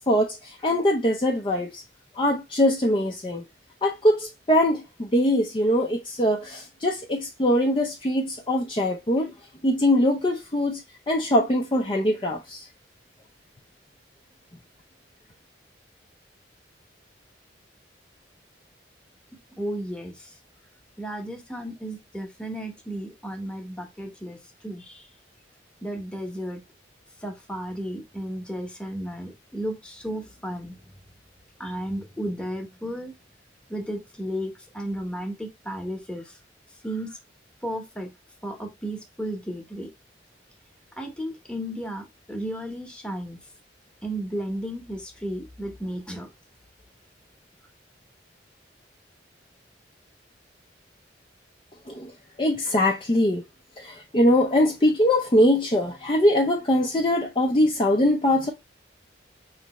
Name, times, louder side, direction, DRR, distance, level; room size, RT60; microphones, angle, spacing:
voice 1, 0.1-1.8 2.2-3.4 3.8-9.3 9.6-10.8 11.1-12.7 51.9-52.1 52.4-53.4 53.8-58.5, left 1 dB, 25° left, 0.5 m, -22 dB
voice 2, 19.6-20.3 21.0-24.4 24.6-25.1 25.8-26.6 27.2-30.7 31.6-33.1 33.7-36.4 36.8-37.2 37.6-38.1 38.4-39.9 41.0-43.4 44.0-46.3, equal, 5° left, 1.0 m, -33 dB
5.1 x 3.3 x 2.9 m
head